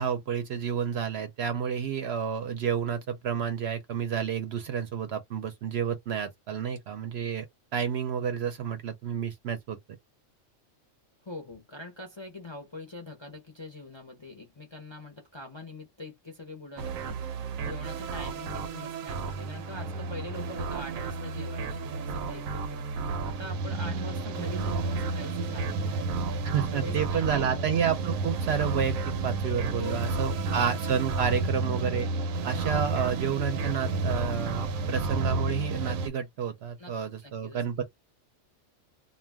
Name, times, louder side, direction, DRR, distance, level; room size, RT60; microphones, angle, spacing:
voice 1, 0.0-7.4 7.7-9.8 26.4-32.1 32.4-37.8, right 7 dB, 65° right, 0.7 m, -30 dB
voice 2, 11.2-26.1 26.5-27.8 29.8-30.6 36.8-37.0 37.2-37.8, left 2 dB, 35° left, 0.5 m, -43 dB
sound 1, 16.8-36.1, right 3 dB, 85° right, 1.0 m, -31 dB
2.4 x 2.2 x 3.3 m
omnidirectional pair, 1.4 m